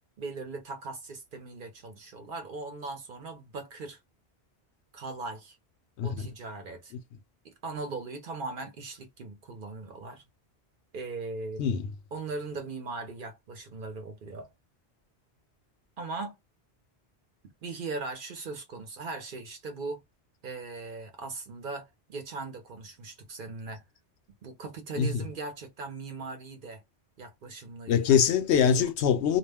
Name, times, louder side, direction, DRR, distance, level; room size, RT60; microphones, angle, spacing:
voice 1, 0.2-4.0 4.9-5.6 6.0-6.9 7.4-10.2 10.9-11.6 12.1-14.5 16.0-16.4 17.6-20.0 20.4-23.8 24.4-26.8 27.2-28.2 28.6-28.9, right 3 dB, 55° right, 0.8 m, -39 dB
voice 2, 27.9-29.4, left 7 dB, 75° left, 0.8 m, -23 dB
2.3 x 2.1 x 3.3 m
omnidirectional pair, 1.1 m